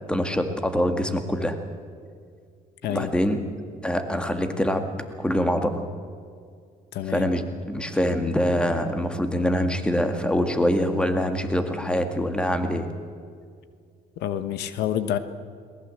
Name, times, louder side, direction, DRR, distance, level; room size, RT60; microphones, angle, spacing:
voice 1, 0.0-1.6 2.9-3.4 3.8-4.9 5.2-5.9 7.1-12.9, equal, 5° left, 6 dB, 1.9 m, -24 dB
voice 2, 6.9-7.3 14.2-15.2, left 11 dB, 80° left, 11 dB, 1.2 m, -27 dB
21.5 x 19.0 x 7.8 m, 2.2 s
cardioid pair, 110°, 17 cm